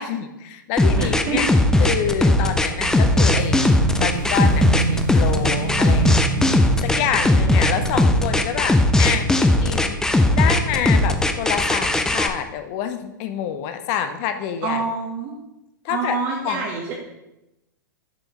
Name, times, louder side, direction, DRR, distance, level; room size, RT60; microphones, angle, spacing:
voice 1, 0.0-1.5 1.8-6.2 6.8-14.8 15.8-16.2 16.4-16.6, left 9 dB, 45° left, 8 dB, 0.7 m, -27 dB
sound 1, 0.8-12.3, left 1 dB, 5° left, 0.5 m, -18 dB
voice 2, 0.9-1.4 14.6-15.3 15.9-16.9, right 4 dB, 45° right, -1 dB, 1.1 m, -26 dB
Motorcycle / Engine, 1.3-9.9, right 6 dB, 60° right, 0.6 m, -29 dB
7.0 x 5.2 x 3.0 m, 0.94 s
hypercardioid pair, 105°, 11 cm